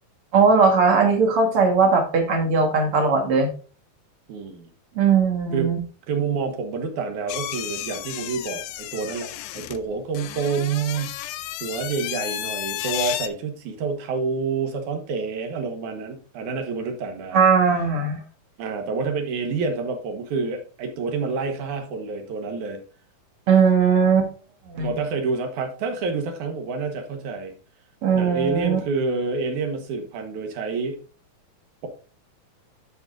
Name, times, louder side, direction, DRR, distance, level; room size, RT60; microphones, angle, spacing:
voice 1, 0.3-3.5 5.0-5.8 17.3-18.2 23.5-24.3 24.7-24.9 28.0-28.8, right 5 dB, 50° right, 3 dB, 1.9 m, -19 dB
voice 2, 4.3-4.7 5.5-5.7 6.1-11.2 11.6-17.5 18.6-22.8 24.8-27.5 28.1-31.0, right 4 dB, 65° right, 5 dB, 2.5 m, -28 dB
sound 1, 7.3-13.3, left 14 dB, 85° left, 2.3 m, -32 dB
13.0 x 5.3 x 2.5 m, 0.38 s
omnidirectional pair, 4.0 m